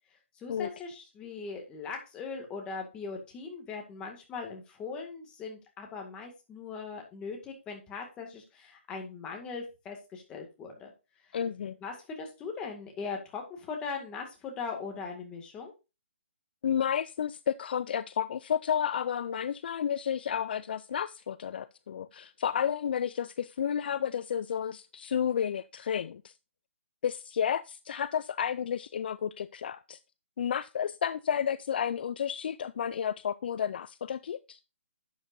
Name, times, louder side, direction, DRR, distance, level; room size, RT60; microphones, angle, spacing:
voice 1, 0.4-10.9 11.3-11.4 11.8-15.7, left 5 dB, 15° left, 2.0 m, -40 dB
voice 2, 11.3-11.8 16.6-26.3 27.0-30.0 30.4-34.6, left 8 dB, 50° left, 0.4 m, -31 dB
11.0 x 8.1 x 2.6 m
hypercardioid pair, 160°, 7 cm